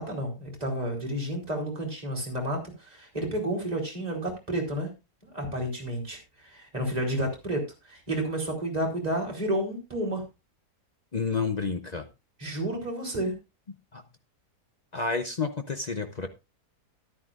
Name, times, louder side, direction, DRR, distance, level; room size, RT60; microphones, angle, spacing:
voice 1, 0.0-4.9 5.2-10.2 12.4-13.3, right 1 dB, 25° right, 0 dB, 3.5 m, -31 dB
voice 2, 11.1-12.1 13.9-14.0 14.9-16.3, left 4 dB, 50° left, 7 dB, 0.4 m, -30 dB
13.5 x 10.5 x 2.4 m, 0.26 s
omnidirectional pair, 1.7 m